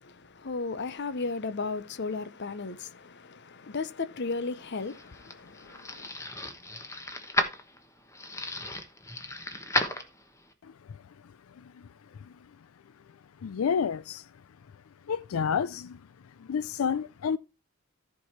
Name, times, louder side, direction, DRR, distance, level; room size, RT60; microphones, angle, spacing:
voice 1, 0.0-6.1, left 4 dB, 55° left, 0.8 m, -35 dB
sound 1, 4.6-10.5, left 1 dB, 15° left, 1.1 m, -34 dB
voice 2, 13.4-14.2 15.1-16.0 16.4-17.4, left 6 dB, 85° left, 0.4 m, -29 dB
14.0 x 4.7 x 4.4 m
head